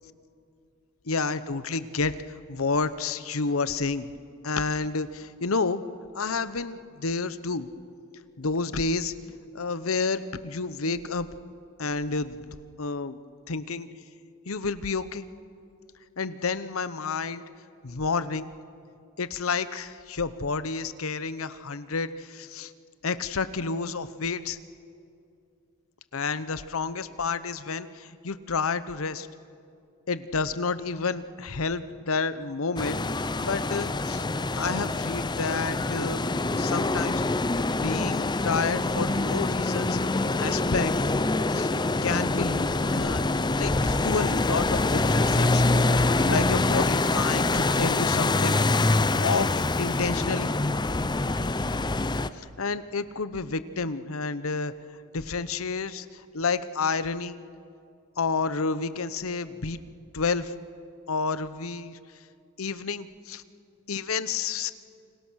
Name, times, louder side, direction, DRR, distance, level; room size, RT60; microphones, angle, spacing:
voice 1, 1.1-2.2 2.5-4.1 4.4-5.8 6.1-7.7 8.4-9.1 9.5-11.3 11.8-13.2 13.5-13.9 14.5-15.3 16.2-17.4 17.8-18.5 19.2-22.7 23.0-24.6 26.1-29.3 30.1-33.0 33.4-34.2 34.5-36.2 36.6-37.2 37.8-40.0 40.4-40.9 41.5-41.7 42.0-45.6 46.3-48.7 49.2-50.5 52.3-54.7 55.1-57.4 58.2-59.8 60.1-60.5 61.1-62.0 62.6-63.4 63.9-64.7, left 4 dB, 75° left, 14 dB, 0.9 m, -30 dB
sound 1, 32.8-52.3, left 2 dB, 20° left, 0.6 m, -25 dB
29.0 x 26.0 x 6.4 m, 2.5 s
head